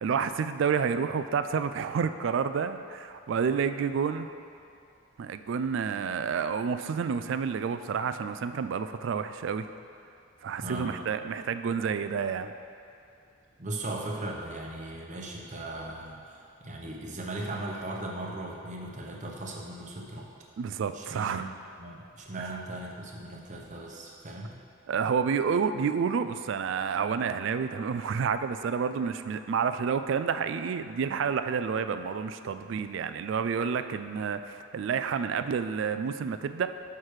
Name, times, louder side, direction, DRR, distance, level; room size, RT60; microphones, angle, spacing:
voice 1, 0.0-4.3 5.2-9.7 10.4-12.5 20.6-21.5 24.9-36.7, right 6 dB, 60° right, 10 dB, 0.3 m, -29 dB
voice 2, 10.6-10.9 13.6-20.3 20.9-21.5 21.8-24.5, right 2 dB, 40° right, -1 dB, 0.8 m, -38 dB
6.5 x 5.8 x 4.8 m, 2.5 s
head